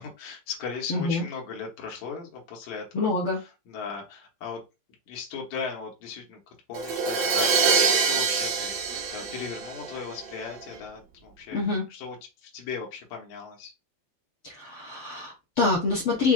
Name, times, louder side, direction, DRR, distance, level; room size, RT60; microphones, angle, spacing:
voice 1, 0.0-4.6 5.1-6.4 6.7-11.6 11.9-12.2 12.4-13.7, left 5 dB, 65° left, 0 dB, 2.4 m, -37 dB
voice 2, 0.9-1.2 2.9-3.4 11.5-11.8 14.4-16.3, left 3 dB, 85° left, -4 dB, 1.2 m, -26 dB
Crash cymbal, 6.7-10.5, right 5 dB, 70° right, 1.7 m, -25 dB
6.0 x 2.7 x 2.4 m, 0.25 s
omnidirectional pair, 4.0 m